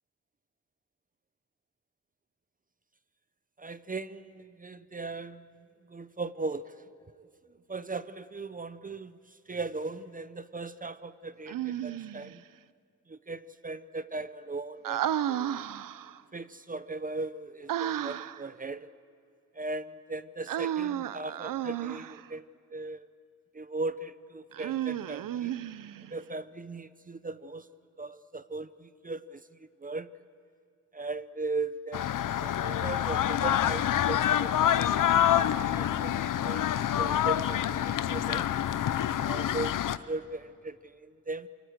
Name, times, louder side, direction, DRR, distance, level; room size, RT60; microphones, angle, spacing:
voice 1, 3.6-6.8 7.0-7.3 7.7-12.4 13.1-15.6 16.3-18.9 19.5-23.1 23.5-25.5 26.1-27.7 28.0-30.1 30.9-32.1 32.4-35.0 35.7-36.6 36.9-38.5 39.2-41.5, right 3 dB, 25° right, 14 dB, 0.7 m, -38 dB
Human voice, 11.5-12.4 14.8-16.2 17.7-18.5 20.5-22.3 24.5-26.1, right 11 dB, 85° right, 0.6 m, -33 dB
sound 1, 31.9-40.0, left 10 dB, 75° left, 0.7 m, -27 dB
27.5 x 23.0 x 8.0 m, 2.3 s
cardioid pair, 95°, 32 cm